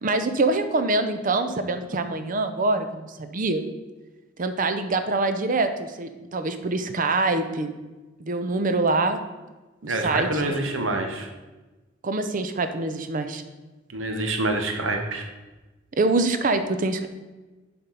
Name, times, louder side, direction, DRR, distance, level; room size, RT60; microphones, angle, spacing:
voice 1, 0.0-3.6 4.4-7.7 8.2-9.2 9.8-10.6 12.0-13.4 16.0-17.1, right 3 dB, 45° right, 8 dB, 0.6 m, -25 dB
voice 2, 9.9-11.3 13.9-15.3, right 2 dB, 90° right, 4 dB, 1.0 m, -26 dB
7.3 x 4.4 x 5.3 m, 1.2 s
head